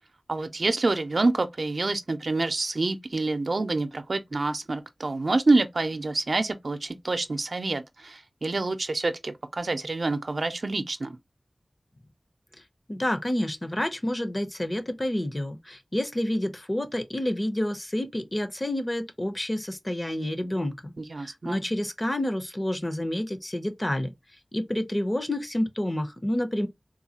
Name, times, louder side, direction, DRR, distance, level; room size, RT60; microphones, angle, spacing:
voice 1, 0.3-11.2 21.0-21.6, right 3 dB, 75° right, 0.5 m, -27 dB
voice 2, 12.9-20.9 21.2-24.1 24.5-26.7, left 1 dB, 35° left, 0.8 m, -29 dB
3.9 x 2.3 x 2.8 m
wide cardioid pair, 50°, 0 cm